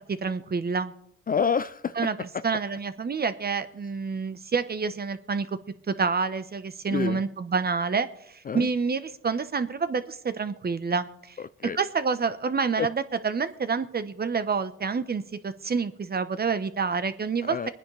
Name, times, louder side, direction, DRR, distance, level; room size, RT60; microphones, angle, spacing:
voice 1, 0.1-0.9 1.9-5.6 5.9-11.4 11.7-17.7, right 5 dB, 30° right, 12 dB, 1.0 m, -28 dB
voice 2, 1.3-1.9 2.3-2.4 6.9-7.2 8.5-8.7 11.4-11.8 12.8-12.9 17.4-17.7, left 6 dB, 30° left, 14 dB, 0.4 m, -28 dB
24.0 x 9.9 x 3.4 m, 0.71 s
cardioid pair, 90°, 30 cm